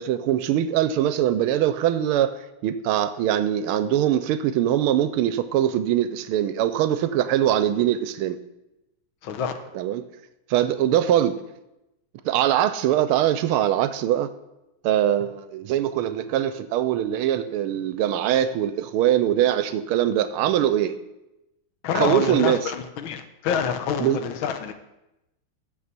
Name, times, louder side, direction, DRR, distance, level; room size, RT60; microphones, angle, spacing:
voice 1, 0.0-2.3 2.6-8.4 9.7-10.0 10.5-11.4 12.2-14.3 14.8-20.9 21.9-22.7 24.0-24.2, right 11 dB, 80° right, 1.5 m, -22 dB
voice 2, 9.2-9.5 21.8-24.7, left 7 dB, 75° left, 1.5 m, -27 dB
6.9 x 6.9 x 6.7 m
omnidirectional pair, 2.4 m